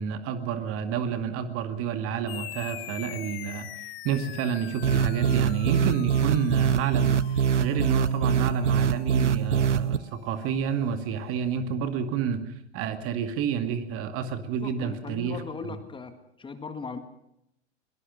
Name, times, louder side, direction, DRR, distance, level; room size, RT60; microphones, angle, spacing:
voice 1, 0.0-3.7 4.0-15.4, right 7 dB, 40° right, 9 dB, 2.2 m, -30 dB
sound 1, 2.3-11.2, left 16 dB, 55° left, 1.3 m, -44 dB
sound 2, 4.8-10.0, right 7 dB, 90° right, 0.8 m, -23 dB
voice 2, 14.6-17.0, left 4 dB, 15° left, 9 dB, 1.8 m, -38 dB
22.0 x 19.0 x 6.4 m, 0.79 s
hypercardioid pair, 100°, 35 cm